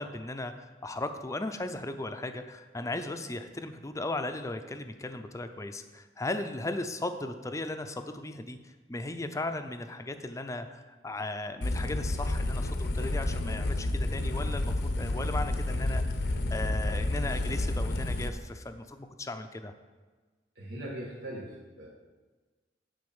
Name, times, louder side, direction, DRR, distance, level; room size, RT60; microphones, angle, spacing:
voice 1, 0.0-16.2 16.5-19.7, left 2 dB, 20° left, 8 dB, 0.5 m, -37 dB
sound 1, 11.6-18.3, left 1 dB, 65° left, 0.7 m, -30 dB
voice 2, 20.5-21.9, right 1 dB, 85° right, -6 dB, 1.7 m, -40 dB
9.7 x 4.1 x 7.1 m, 1.3 s
head